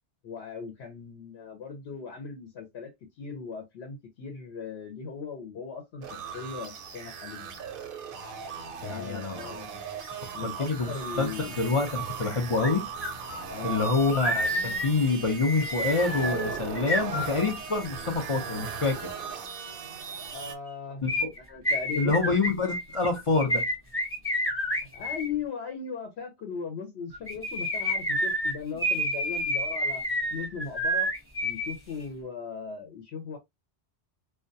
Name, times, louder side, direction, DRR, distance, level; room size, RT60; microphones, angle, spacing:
voice 1, 0.2-2.9 3.2-7.6 8.8-9.8 10.3-11.5 13.5-13.8 20.3-21.1 21.5-22.3 24.8-30.0 30.3-31.1 31.4-33.4, left 6 dB, 75° left, 0.9 m, -38 dB
sound 1, 6.0-20.5, right 6 dB, 60° right, 0.7 m, -38 dB
voice 2, 8.8-9.5 10.4-11.3 11.6-12.8 13.6-19.1 21.0-21.3 22.0-23.6, left 3 dB, 50° left, 0.4 m, -27 dB
sound 2, 12.6-12.7 13.0-17.8 21.1-25.3 27.1-31.7 32.0-32.1, equal, 15° left, 0.6 m, -29 dB
2.2 x 2.2 x 2.6 m
omnidirectional pair, 1.1 m